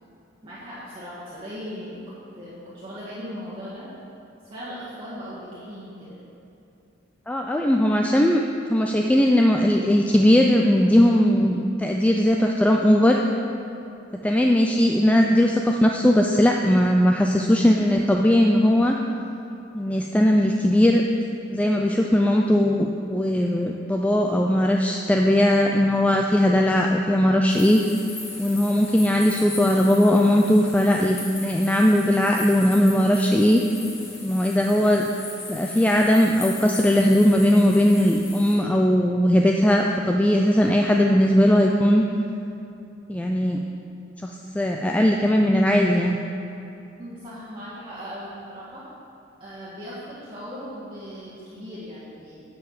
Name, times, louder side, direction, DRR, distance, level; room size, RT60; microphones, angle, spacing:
voice 1, 0.4-3.9 4.4-6.2 47.0-48.8 49.4-52.4, equal, 25° right, -11 dB, 1.6 m, -38 dB
voice 2, 7.3-8.4 8.7-13.2 14.2-19.0 19.7-21.1 21.5-27.8 28.4-33.6 34.2-35.1 35.5-42.0 43.1-43.6 44.2-46.2, left 1 dB, 5° left, 1 dB, 0.3 m, -19 dB
sound 1, 27.5-38.6, left 2 dB, 35° left, 2.0 m, -38 dB
9.4 x 4.7 x 7.2 m, 2.8 s
head